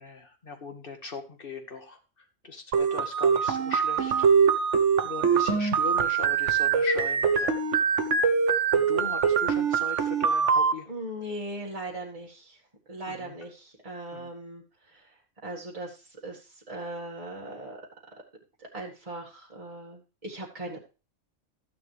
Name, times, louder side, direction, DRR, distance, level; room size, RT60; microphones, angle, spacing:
voice 1, 0.0-4.3 5.0-7.6 8.7-10.9 13.1-13.4 14.1-14.3, left 3 dB, 45° left, 5 dB, 1.9 m, -39 dB
sound 1, 2.7-10.7, right 6 dB, 70° right, 1.3 m, -23 dB
voice 2, 10.9-12.6 12.9-15.0 15.4-16.0 16.2-17.8 18.7-20.8, right 1 dB, 30° right, -3 dB, 1.9 m, -39 dB
14.0 x 9.5 x 3.3 m, 0.34 s
omnidirectional pair, 1.3 m